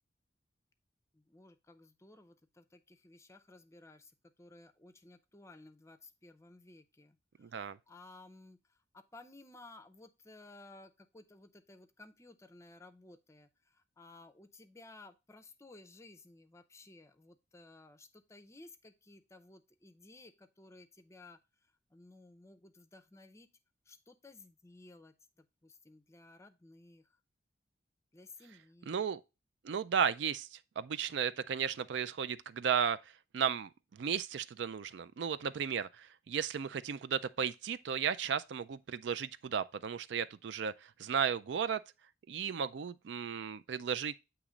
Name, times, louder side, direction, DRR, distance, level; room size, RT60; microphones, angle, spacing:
voice 1, 1.1-4.1 4.4-7.2 7.5-8.6 8.9-21.4 21.9-23.5 23.9-25.1 25.6-27.0 28.1-29.0, left 2 dB, 15° left, 0.5 m, -56 dB
voice 2, 7.4-7.8 28.9-29.2 29.6-41.8 42.3-44.2, right 7 dB, 65° right, 0.4 m, -35 dB
8.5 x 3.0 x 4.9 m
head